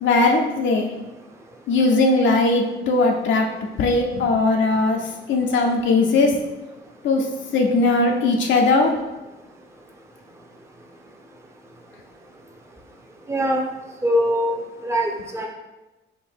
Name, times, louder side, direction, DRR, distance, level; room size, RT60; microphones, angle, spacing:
voice 1, 0.0-0.9 1.7-3.5 3.8-5.0 5.3-6.4 7.0-7.2 7.5-8.9, left 3 dB, 70° left, 1 dB, 0.6 m, -19 dB
voice 2, 13.3-13.6 14.0-14.6 14.8-15.5, equal, 15° right, 0 dB, 0.7 m, -22 dB
3.8 x 2.7 x 4.4 m, 1.0 s
cardioid pair, 90°, 20 cm